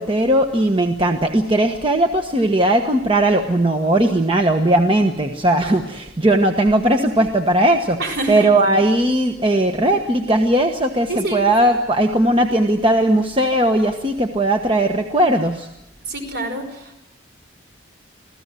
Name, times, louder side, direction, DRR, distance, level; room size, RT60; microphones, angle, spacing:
voice 1, 0.0-8.0 8.3-15.7, right 1 dB, 25° right, 4 dB, 1.2 m, -18 dB
voice 2, 8.0-8.5 11.1-11.4 16.0-17.0, right 2 dB, 55° right, 5 dB, 5.2 m, -26 dB
26.0 x 16.0 x 7.7 m, 0.89 s
head